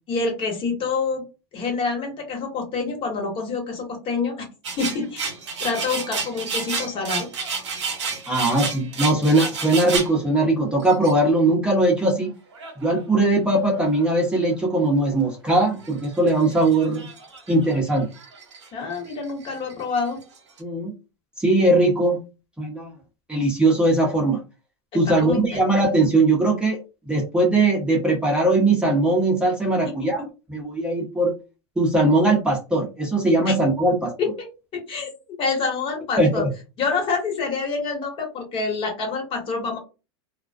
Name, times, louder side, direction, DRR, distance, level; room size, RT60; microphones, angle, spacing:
voice 1, 0.1-1.2 1.5-4.5 4.8-5.3 5.6-7.3 18.7-20.2 25.2-25.4 33.5-33.6 34.2-34.5 34.7-35.1 35.4-36.5 36.8-39.8, left 4 dB, 35° left, 2 dB, 1.1 m, -27 dB
sound 1, 4.6-10.1 10.8-11.1 12.5-13.2 13.5-14.0 14.5-14.6 14.9-15.0 15.6-18.7 18.9-20.6, right 5 dB, 90° right, 0.9 m, -31 dB
voice 2, 8.3-12.3 12.8-17.1 17.5-18.1 20.6-20.9 21.4-22.2 22.6-22.9 23.3-24.4 24.9-26.8 27.1-30.2 30.5-31.3 31.8-34.1 36.2-36.5, right 2 dB, 5° right, -2 dB, 0.8 m, -20 dB
2.3 x 2.2 x 2.4 m, 0.29 s
hypercardioid pair, 110°, 15 cm